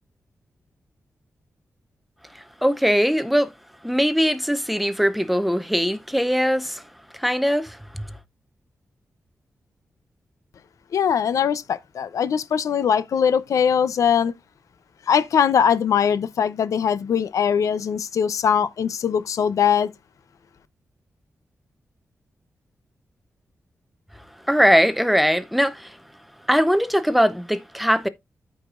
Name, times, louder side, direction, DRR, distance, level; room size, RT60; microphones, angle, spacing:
voice 1, 2.6-3.5 3.8-6.8 7.1-8.0 24.5-25.9 26.5-28.1, equal, ahead, 0.7 m, -20 dB
voice 2, 10.9-14.3 15.1-19.9, left 7 dB, 90° left, 0.7 m, -21 dB
13.5 x 5.0 x 2.5 m
wide cardioid pair, 115°, 5 cm